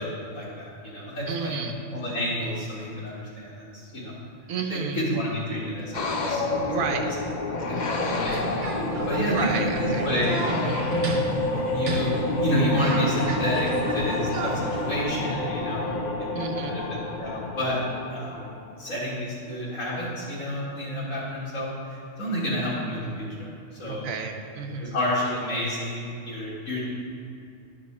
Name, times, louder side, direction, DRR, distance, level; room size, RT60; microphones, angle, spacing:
voice 1, 0.0-4.1 4.7-6.7 7.0-7.1 7.5-10.8 11.7-12.1 12.4-13.7 13.9-16.4 16.7-17.8 18.1-18.5 18.8-23.5 23.8-24.1 24.8-26.8, equal, 75° left, -8 dB, 2.1 m, -30 dB
voice 2, 1.3-1.8 4.5-5.1 6.7-7.1 9.2-10.1 10.5-10.9 16.3-16.7 23.9-25.0, right 5 dB, 80° right, 5 dB, 1.1 m, -31 dB
sound 1, 5.9-18.9, left 2 dB, 45° left, 0.6 m, -29 dB
sound 2, 8.1-15.0, right 2 dB, 55° right, 1.0 m, -32 dB
11.0 x 5.5 x 4.2 m, 2.5 s
omnidirectional pair, 1.4 m